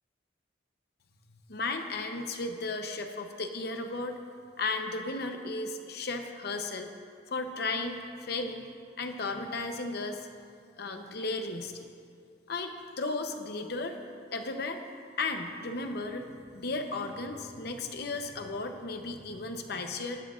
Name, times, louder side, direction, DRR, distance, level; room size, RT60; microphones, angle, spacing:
voice 1, 1.5-4.2 4.6-6.9 7.3-8.6 9.0-10.3 10.8-11.9 12.5-14.0 14.3-14.8 15.2-20.2, left 3 dB, 60° left, 5 dB, 0.8 m, -35 dB
17.0 x 10.5 x 2.5 m, 2.3 s
head